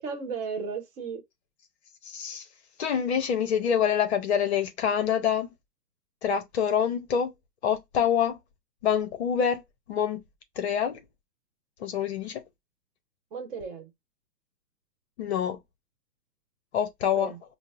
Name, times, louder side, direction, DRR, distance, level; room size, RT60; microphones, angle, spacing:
voice 1, 0.0-1.2 13.3-13.9 17.2-17.4, right 5 dB, 35° right, 1.1 m, -34 dB
voice 2, 2.0-2.4 2.8-5.5 6.2-7.3 7.6-8.4 8.8-9.6 9.9-10.2 10.6-11.0 11.8-12.4 15.2-15.6 16.7-17.3, left 8 dB, 45° left, 0.7 m, -26 dB
5.1 x 2.0 x 2.4 m
hypercardioid pair, 125°, 48 cm